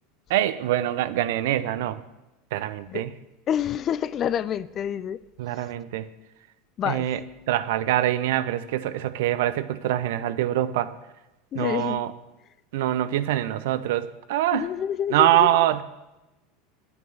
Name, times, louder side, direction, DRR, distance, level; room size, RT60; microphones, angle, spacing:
voice 1, 0.3-2.0 2.5-3.1 5.4-6.1 6.8-7.2 7.5-10.9 11.5-12.1 12.7-14.7 15.1-15.8, right 13 dB, 65° right, 0.7 m, -24 dB
voice 2, 3.5-5.2 6.8-7.1 11.5-12.0 14.5-15.5, left 9 dB, 40° left, 0.5 m, -27 dB
9.6 x 9.1 x 7.8 m
hypercardioid pair, 80°, 0 cm